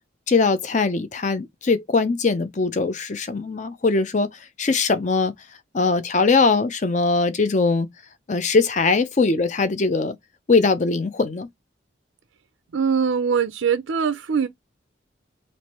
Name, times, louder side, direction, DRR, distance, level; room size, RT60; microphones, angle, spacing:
voice 1, 0.3-4.3 4.6-5.3 5.7-7.9 8.3-10.2 10.5-11.5, left 4 dB, 40° left, 0.5 m, -21 dB
voice 2, 12.7-14.5, right 6 dB, 85° right, 0.5 m, -22 dB
3.3 x 2.6 x 4.2 m
head